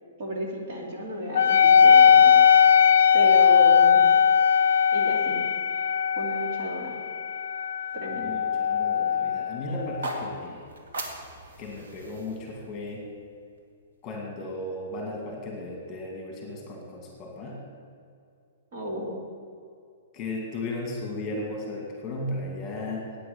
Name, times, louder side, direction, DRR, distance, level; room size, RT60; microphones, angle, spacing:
voice 1, 0.2-2.3 3.1-4.0 4.9-5.4 6.2-6.9 7.9-8.3 18.7-19.2, right 1 dB, 40° right, -1 dB, 2.5 m, -32 dB
Wind instrument woodwind instrument, 1.3-10.3, left 7 dB, 75° left, 0.4 m, -19 dB
voice 2, 8.1-10.6 11.6-13.1 14.0-17.6 20.1-23.2, left 2 dB, 20° left, 0 dB, 2.3 m, -35 dB
sound 1, 9.8-13.9, right 2 dB, 80° right, 2.3 m, -40 dB
9.5 x 9.0 x 8.6 m, 2.4 s
hypercardioid pair, 170°, 0 cm